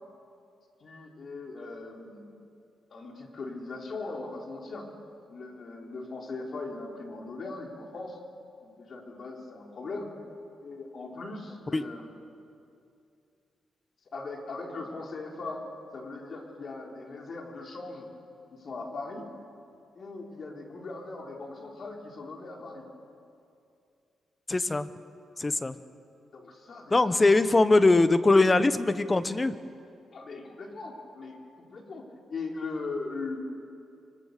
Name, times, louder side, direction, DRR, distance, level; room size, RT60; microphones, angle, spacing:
voice 1, 0.8-2.2 2.9-4.9 5.3-8.2 8.6-10.1 10.6-12.1 14.1-15.6 15.9-18.1 18.5-19.3 19.9-22.9 26.3-27.2 30.1-32.0 32.3-33.4, left 3 dB, 50° left, 1 dB, 4.1 m, -39 dB
voice 2, 24.5-24.9 25.4-25.7 26.9-29.5, left 2 dB, 25° left, 13 dB, 1.0 m, -22 dB
24.5 x 24.0 x 6.8 m, 2.5 s
cardioid pair, 85°, 0 cm